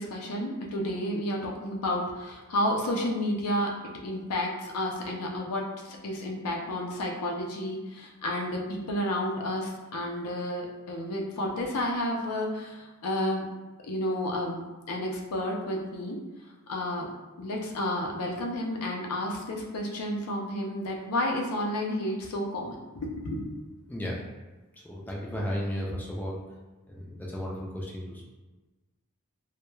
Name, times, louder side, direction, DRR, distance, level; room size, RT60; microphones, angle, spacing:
voice 1, 0.0-3.7 4.0-13.5 13.8-16.2 16.7-17.1 17.4-23.7, left 1 dB, 90° left, 0 dB, 0.5 m, -31 dB
voice 2, 23.9-24.2 24.7-26.4 26.9-28.3, equal, 10° left, -4 dB, 0.3 m, -34 dB
2.2 x 2.1 x 3.0 m, 1.2 s
head